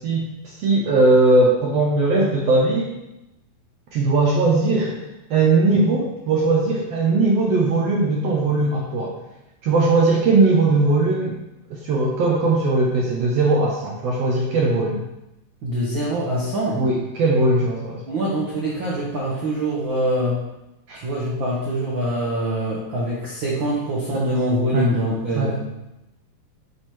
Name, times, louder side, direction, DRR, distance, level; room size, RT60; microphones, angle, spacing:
voice 1, 0.0-2.9 3.9-5.0 5.3-9.2 9.6-11.4 11.7-15.0 16.7-18.0 20.9-21.0 24.1-24.2 24.7-24.9 25.3-25.6, right 3 dB, 80° right, -2 dB, 1.4 m, -19 dB
voice 2, 15.6-16.8 18.1-20.4 20.9-25.6, right 1 dB, 60° right, -5 dB, 1.2 m, -24 dB
9.3 x 3.7 x 4.5 m, 0.93 s
omnidirectional pair, 4.0 m